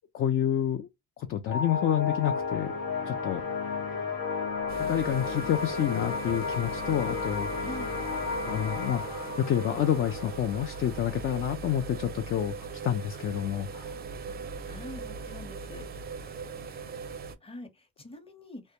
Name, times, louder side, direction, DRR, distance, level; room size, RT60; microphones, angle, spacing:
voice 1, 0.1-0.9 1.2-2.7 3.1-3.4 4.8-7.7 8.5-14.0, left 10 dB, 40° left, 0.4 m, -29 dB
sound 1, 1.5-12.5, left 5 dB, 90° left, 1.0 m, -34 dB
sound 2, 4.7-17.4, right 5 dB, 30° right, 0.5 m, -40 dB
voice 2, 7.6-7.9 14.3-14.4 14.6-15.9 17.4-18.6, left 1 dB, 20° left, 0.8 m, -44 dB
2.1 x 2.1 x 2.8 m
supercardioid pair, 80°, 31 cm